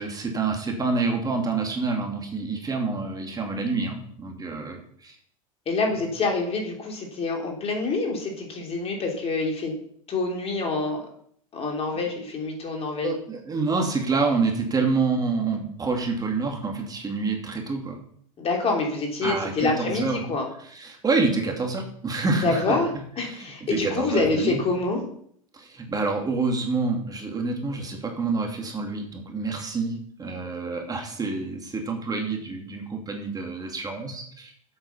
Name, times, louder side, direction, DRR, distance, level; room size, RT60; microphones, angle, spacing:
voice 1, 0.0-5.2 13.0-18.0 19.2-20.2 20.7-22.8 23.2-24.6 25.5-34.5, right 4 dB, 20° right, 2 dB, 2.3 m, -27 dB
voice 2, 5.7-9.7 10.1-11.1 11.5-13.2 18.4-20.5 22.4-22.9 23.2-25.0, left 3 dB, 35° left, 1 dB, 3.1 m, -26 dB
8.3 x 7.4 x 5.6 m, 0.65 s
hypercardioid pair, 95°, 18 cm